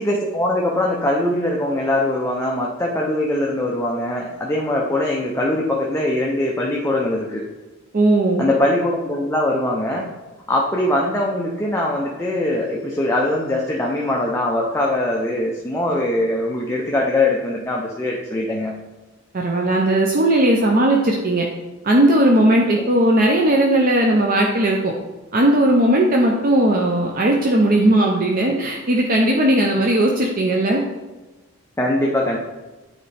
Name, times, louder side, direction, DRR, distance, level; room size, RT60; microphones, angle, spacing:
voice 1, 0.0-7.4 8.4-10.1 10.5-18.7 31.8-32.4, left 1 dB, 10° left, -2 dB, 0.6 m, -22 dB
voice 2, 7.9-8.5 19.3-21.5 21.8-24.9 25.3-30.8, right 1 dB, 45° right, 0 dB, 0.6 m, -17 dB
9.3 x 4.3 x 3.4 m, 1.2 s
head